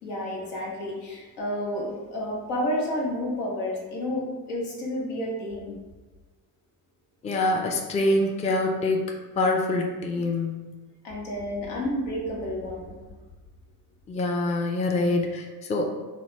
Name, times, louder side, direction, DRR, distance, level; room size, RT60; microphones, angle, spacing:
voice 1, 0.0-5.8 11.0-13.0, left 1 dB, 90° left, -3 dB, 0.9 m, -30 dB
voice 2, 7.2-10.6 14.1-15.9, left 2 dB, 15° left, 2 dB, 0.3 m, -25 dB
3.0 x 2.1 x 3.1 m, 1.3 s
supercardioid pair, 65°, 48 cm